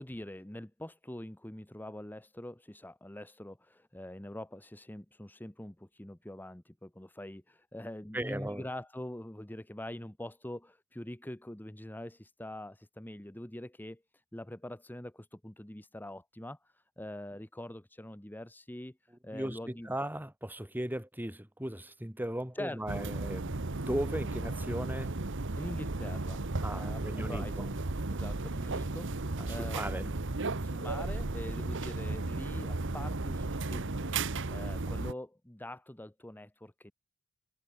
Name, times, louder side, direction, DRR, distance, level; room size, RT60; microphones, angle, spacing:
voice 1, 0.0-20.0 22.5-22.8 25.6-26.4 26.7-27.8 28.1-30.1 30.6-34.1 34.5-36.9, left 1 dB, 10° left, 1.1 m, -44 dB
voice 2, 8.1-8.7 19.3-23.6 23.9-25.1 26.6-27.7 29.4-30.1, right 1 dB, 10° right, 2.5 m, -37 dB
sound 1, 22.9-35.1, right 2 dB, 60° right, 1.3 m, -35 dB
head